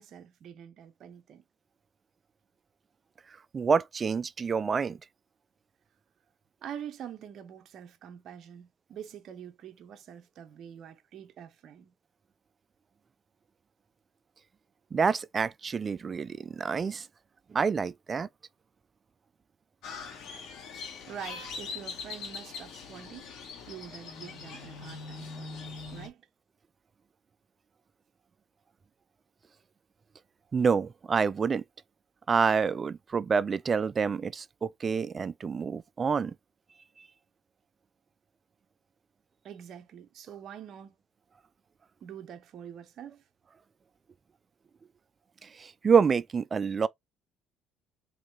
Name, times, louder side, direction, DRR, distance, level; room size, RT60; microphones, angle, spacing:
voice 1, 0.0-1.4 6.6-11.9 21.1-23.3 23.7-26.3 39.4-41.0 42.0-43.2, right 9 dB, 55° right, 0.8 m, -45 dB
voice 2, 3.5-5.0 14.9-17.1 17.5-18.3 30.5-31.6 32.3-36.3 37.0-37.1 45.4-46.9, right 5 dB, 30° right, 0.3 m, -27 dB
Crow, 19.8-26.1, left 5 dB, 65° left, 1.9 m, -42 dB
3.8 x 3.1 x 3.2 m
cardioid pair, 115°, 0 cm